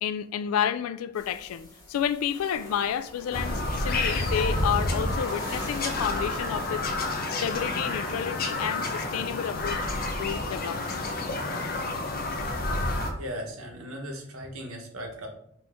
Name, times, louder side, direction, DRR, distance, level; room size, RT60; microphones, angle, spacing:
voice 1, 0.0-6.8 7.3-9.8 10.2-11.0, left 8 dB, 90° left, 0.3 m, -30 dB
sound 1, 1.1-6.7, left 1 dB, 20° left, 1.0 m, -44 dB
Bird vocalization bird call bird song, 3.3-13.1, left 2 dB, 45° left, 0.6 m, -29 dB
voice 2, 13.2-15.3, equal, 85° right, 1.0 m, -37 dB
4.3 x 2.7 x 3.5 m
head